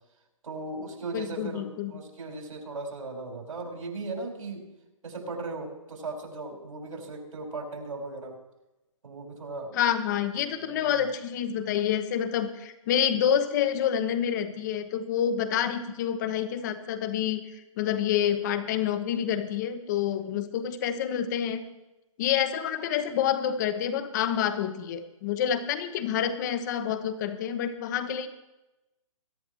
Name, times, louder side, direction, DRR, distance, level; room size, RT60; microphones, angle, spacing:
voice 1, 0.4-4.7 5.0-8.4 9.0-9.8 10.5-11.0, right 3 dB, 75° right, 1 dB, 4.7 m, -37 dB
voice 2, 1.1-1.9 9.7-17.4 17.8-21.6 22.2-28.3, left 9 dB, 35° left, 10 dB, 1.1 m, -28 dB
21.5 x 11.0 x 3.1 m, 0.97 s
hypercardioid pair, 145°, 18 cm